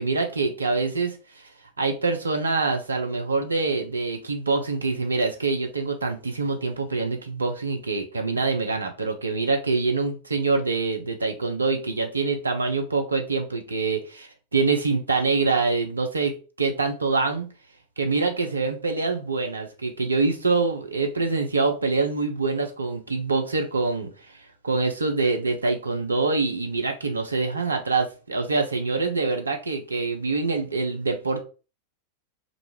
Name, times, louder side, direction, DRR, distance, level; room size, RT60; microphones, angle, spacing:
voice 1, 0.0-1.5 1.8-17.5 18.0-24.1 24.6-31.4, right 3 dB, 75° right, 4 dB, 0.4 m, -25 dB
2.5 x 2.2 x 2.9 m, 0.34 s
figure-of-eight pair, 90°, 0 cm